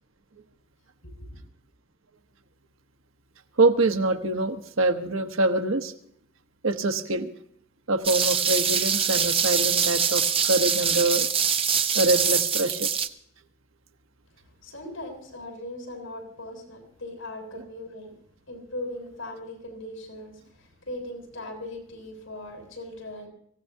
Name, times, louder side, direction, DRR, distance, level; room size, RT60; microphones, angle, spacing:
voice 1, 1.0-1.4 14.6-18.1 18.5-23.3, left 1 dB, 70° left, 2 dB, 6.6 m, -39 dB
voice 2, 3.6-5.9 6.6-7.3 7.9-11.3 11.9-12.9 17.5-17.6, right 2 dB, 80° right, 7 dB, 1.2 m, -24 dB
sound 1, 8.0-13.1, right 7 dB, 30° right, 0.8 m, -24 dB
25.0 x 16.0 x 2.8 m, 0.66 s
head